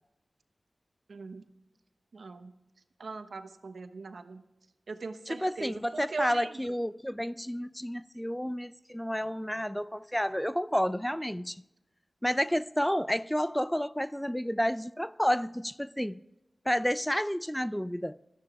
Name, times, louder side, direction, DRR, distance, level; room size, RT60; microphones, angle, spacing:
voice 1, 1.1-1.4 2.1-2.5 3.0-4.4 4.9-6.6, right 4 dB, 85° right, 1.0 m, -40 dB
voice 2, 5.3-11.6 12.2-16.2 16.7-18.2, equal, 5° left, 0.4 m, -30 dB
16.5 x 13.0 x 3.6 m
wide cardioid pair, 55°, 0 cm